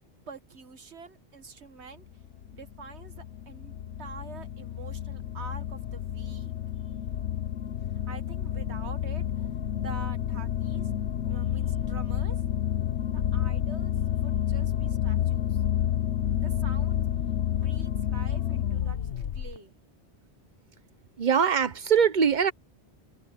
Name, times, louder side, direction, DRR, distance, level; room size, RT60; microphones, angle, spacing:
voice 1, 0.3-2.1 2.5-6.5 8.1-9.2 9.8-10.9 11.3-12.4 13.1-15.6 16.4-17.0 17.5-19.7, right 5 dB, 75° right, 1.9 m, -46 dB
sound 1, 2.0-19.6, left 10 dB, 90° left, 1.2 m, -29 dB
voice 2, 21.2-22.5, right 7 dB, 45° right, 1.0 m, -22 dB
omnidirectional pair, 1.2 m